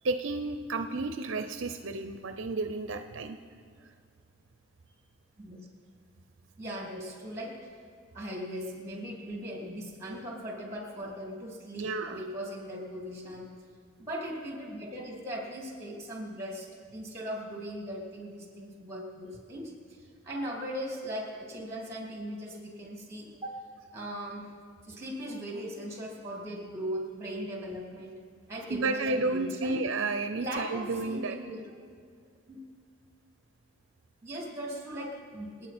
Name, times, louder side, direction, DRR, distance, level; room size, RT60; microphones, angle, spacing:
voice 1, 0.0-3.4 11.7-12.2 28.7-31.4, right 3 dB, 65° right, 8 dB, 0.6 m, -32 dB
voice 2, 6.6-7.6 8.1-13.5 14.0-19.7 20.2-23.6 23.9-24.5 24.8-28.2 28.5-29.7 30.4-31.6 32.5-32.6 34.2-35.7, equal, 15° right, -1 dB, 2.8 m, -39 dB
27.0 x 9.1 x 4.3 m, 2.1 s
head